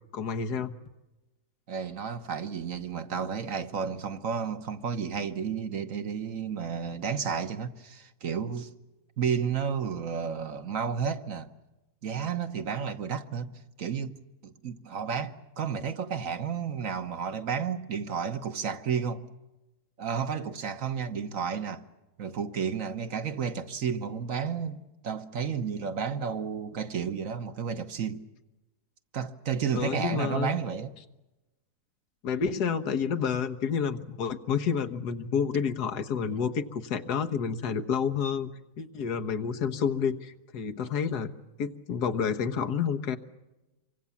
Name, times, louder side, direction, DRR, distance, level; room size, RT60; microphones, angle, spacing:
voice 1, 0.1-0.8 29.7-30.5 32.2-41.3 41.6-43.2, left 6 dB, 90° left, 1.8 m, -29 dB
voice 2, 1.7-8.7 9.2-11.5 12.0-19.2 20.0-21.9 22.2-28.2 29.1-30.9, right 7 dB, 60° right, 1.5 m, -32 dB
27.5 x 24.5 x 7.2 m
omnidirectional pair, 1.6 m